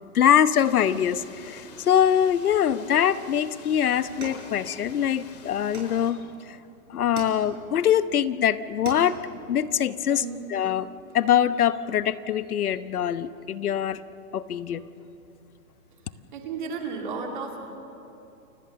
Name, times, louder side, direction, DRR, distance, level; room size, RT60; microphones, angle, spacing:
voice 1, 0.0-6.2 6.5-6.6 6.9-9.2 9.5-10.9 11.1-14.0 14.3-14.8, left 9 dB, 85° left, 14 dB, 1.1 m, -23 dB
sound 1, 0.6-6.1, left 5 dB, 30° left, 2.2 m, -48 dB
sound 2, 4.2-5.2 5.7-6.5 7.2-7.9 8.3-8.4 8.7-9.4, right 4 dB, 85° right, 6.4 m, -40 dB
voice 2, 10.1-10.5 16.3-17.6, right 5 dB, 35° right, 1 dB, 2.7 m, -33 dB
29.5 x 17.5 x 6.8 m, 2.8 s
hypercardioid pair, 180°, 43 cm